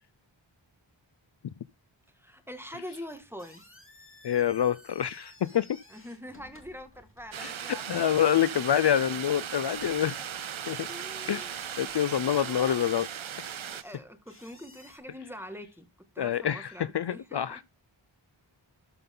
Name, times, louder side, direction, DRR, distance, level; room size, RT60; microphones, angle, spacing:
voice 1, 2.1-3.6 5.9-9.0 10.9-11.5 11.8-12.9 13.7-15.9 16.1-17.6, equal, 5° right, 1.9 m, -45 dB
sound 1, 3.1-15.0, left 1 dB, 25° left, 3.1 m, -57 dB
voice 2, 4.2-5.8 7.4-10.2 10.7-10.9 11.3-13.1 13.4-13.5 16.2-17.6, left 10 dB, 60° left, 0.5 m, -27 dB
sound 2, 7.3-13.8, right 9 dB, 80° right, 0.7 m, -38 dB
12.5 x 5.4 x 3.8 m
wide cardioid pair, 60°, 47 cm